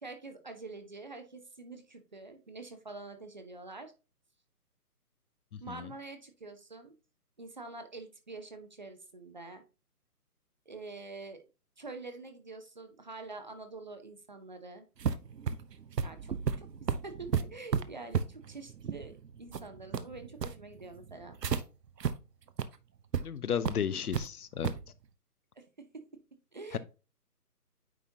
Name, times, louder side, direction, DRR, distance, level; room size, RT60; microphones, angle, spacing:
voice 1, 0.0-3.9 5.6-6.9 7.4-9.6 10.7-11.4 11.8-14.9 16.0-21.4 25.6-25.7 26.5-26.8, right 3 dB, 30° right, 0.6 m, -46 dB
voice 2, 5.5-5.9 23.2-24.7 26.7-26.8, left 8 dB, 70° left, 0.7 m, -34 dB
sound 1, 15.0-21.6 22.0-22.1 22.5-22.7 23.1-23.2 23.7-24.3 24.6-24.9, right 7 dB, 90° right, 0.8 m, -33 dB
9.2 x 4.2 x 2.7 m
hypercardioid pair, 155°, 47 cm